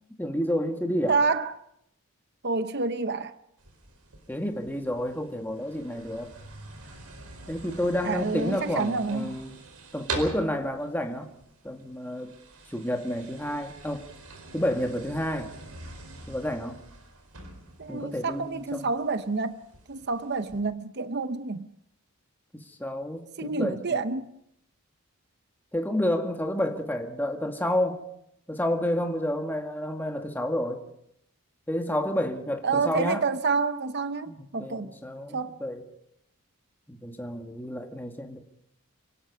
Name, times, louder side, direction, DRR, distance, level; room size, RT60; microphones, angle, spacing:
voice 1, 0.2-1.2 4.3-6.3 7.5-9.6 9.9-11.3 11.6-12.3 12.7-14.0 14.5-15.5 16.3-16.8 17.9-18.9 22.8-24.0 25.7-28.0 28.5-30.8 31.7-33.2 34.3-35.8 36.9-38.4, left 1 dB, 10° left, 1.9 m, -30 dB
voice 2, 1.1-1.5 2.4-3.3 8.0-9.4 17.8-19.6 19.9-21.7 23.4-24.3 32.6-34.9 35.3-35.6, right 4 dB, 50° right, 0.8 m, -28 dB
sound 1, 3.6-20.6, right 3 dB, 85° right, 4.7 m, -44 dB
28.5 x 18.0 x 5.5 m
head